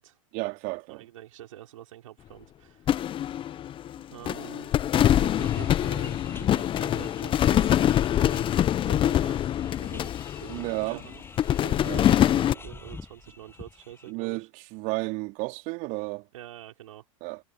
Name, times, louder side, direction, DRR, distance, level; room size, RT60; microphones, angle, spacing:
voice 1, 0.3-1.1 10.5-11.0 11.8-12.0 14.1-16.3 17.2-17.4, right 26 dB, 50° right, 3.5 m, -32 dB
voice 2, 0.9-3.1 4.0-9.4 9.8-10.1 10.4-11.2 11.5-14.5 16.3-17.1, right 13 dB, 70° right, 5.3 m, -46 dB
sound 1, 2.9-4.0 4.3-10.9 11.4-12.5, left 11 dB, 30° left, 0.9 m, -24 dB
sound 2, 5.4-14.1, left 4 dB, 15° left, 7.9 m, -47 dB
hypercardioid pair, 95°, 18 cm